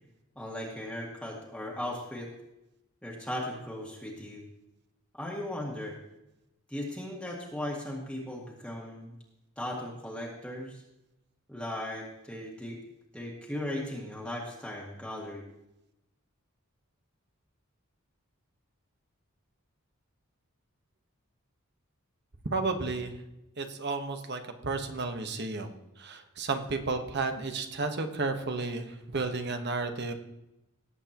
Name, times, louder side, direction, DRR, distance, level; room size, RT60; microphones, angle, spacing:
voice 1, 0.4-2.3 3.0-4.4 5.1-6.0 6.7-9.1 9.6-10.8 11.5-12.8 13.1-15.4, left 1 dB, 5° left, -3 dB, 1.8 m, -37 dB
voice 2, 22.5-23.1 23.6-30.1, right 3 dB, 55° right, 7 dB, 1.2 m, -32 dB
18.5 x 8.1 x 3.0 m, 0.92 s
head